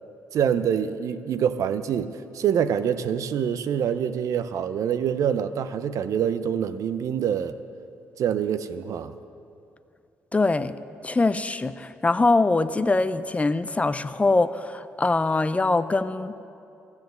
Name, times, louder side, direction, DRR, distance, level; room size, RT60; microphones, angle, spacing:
voice 1, 0.3-7.5 8.2-9.1, right 8 dB, 65° right, 12 dB, 0.6 m, -25 dB
voice 2, 10.3-10.7 11.0-16.4, left 3 dB, 20° left, 13 dB, 0.5 m, -23 dB
13.5 x 7.2 x 7.8 m, 2.6 s
supercardioid pair, 55°, 6 cm